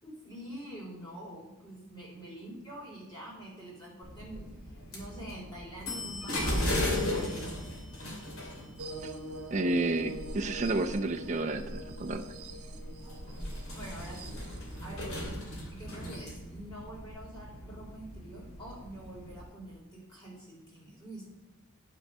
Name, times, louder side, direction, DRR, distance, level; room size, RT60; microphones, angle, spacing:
voice 1, 0.0-4.5 4.9-7.5 12.9-13.2 13.7-14.3 14.8-15.4 15.7-21.3, right 1 dB, 20° left, -4 dB, 3.7 m, -46 dB
sound 1, 4.0-19.4, left 1 dB, 80° left, 2.7 m, -37 dB
sound 2, 8.8-14.8, right 1 dB, 85° right, 1.0 m, -44 dB
voice 2, 9.5-12.2, right 2 dB, 35° right, 4 dB, 0.6 m, -30 dB
9.8 x 6.4 x 5.4 m, 1.1 s
head